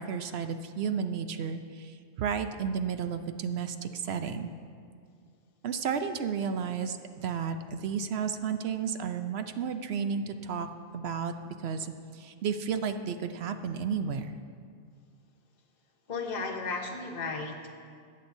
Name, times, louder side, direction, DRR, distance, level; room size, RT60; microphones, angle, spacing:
voice 1, 0.0-4.5 5.6-10.7 10.9-11.3 11.6-14.4, right 6 dB, 65° right, 8 dB, 0.8 m, -32 dB
voice 2, 16.1-17.7, left 4 dB, 40° left, 1 dB, 1.0 m, -34 dB
19.5 x 8.5 x 2.7 m, 2.2 s
omnidirectional pair, 1.3 m